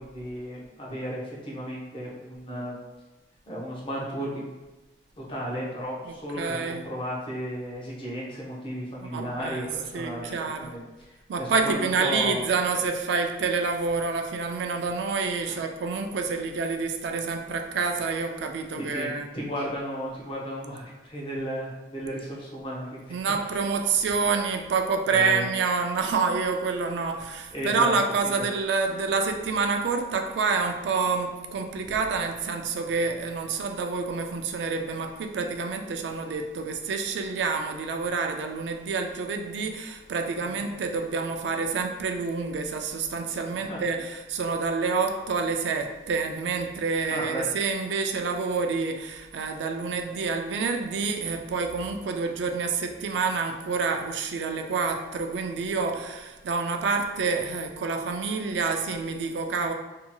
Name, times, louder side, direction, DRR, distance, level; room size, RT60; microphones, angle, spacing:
voice 1, 0.0-2.8 3.5-4.5 5.2-10.8 11.1-12.5 15.4-15.6 18.8-23.2 23.5-23.6 25.1-25.5 27.5-28.0 28.2-28.5 40.4-40.7 43.5-43.8 47.1-47.4, equal, 30° left, -5 dB, 0.6 m, -34 dB
voice 2, 6.0-6.9 9.0-10.7 11.3-19.3 23.1-59.7, right 4 dB, 75° right, 5 dB, 0.3 m, -28 dB
2.8 x 2.7 x 2.2 m, 1.1 s
head